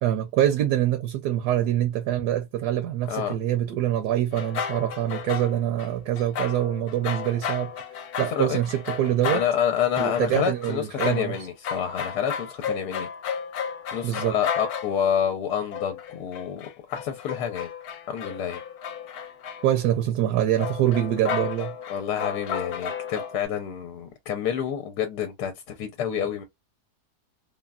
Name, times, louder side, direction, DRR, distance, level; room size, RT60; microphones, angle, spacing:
voice 1, 0.0-7.7 8.2-9.4 10.0-11.4 14.0-14.4 19.6-21.7, right 12 dB, 75° right, 1.1 m, -25 dB
sound 1, 4.3-5.9 6.2-15.2 15.7-19.9 20.6-23.4, left 7 dB, 75° left, 1.1 m, -34 dB
voice 2, 9.3-13.1 13.9-17.7 18.1-18.6 21.9-26.4, left 9 dB, 90° left, 1.2 m, -28 dB
3.5 x 2.1 x 2.3 m
omnidirectional pair, 1.7 m